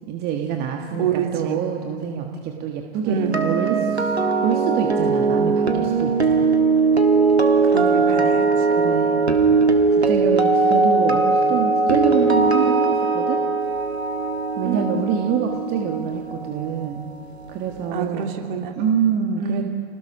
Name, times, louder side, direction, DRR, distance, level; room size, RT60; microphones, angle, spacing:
voice 1, 0.1-4.2 4.4-6.5 8.7-9.4 9.9-13.4 14.6-17.1 17.5-18.3 18.7-19.6, right 8 dB, 30° right, 3 dB, 1.5 m, -26 dB
voice 2, 0.9-1.6 3.0-3.3 7.7-8.5 14.6-14.9 17.9-18.7 19.4-19.6, right 6 dB, 50° right, 3 dB, 2.8 m, -26 dB
sound 1, 3.1-17.2 17.4-17.7, right 4 dB, 85° right, 1.9 m, -20 dB
27.0 x 19.0 x 5.6 m, 2.3 s
figure-of-eight pair, 100°, 31 cm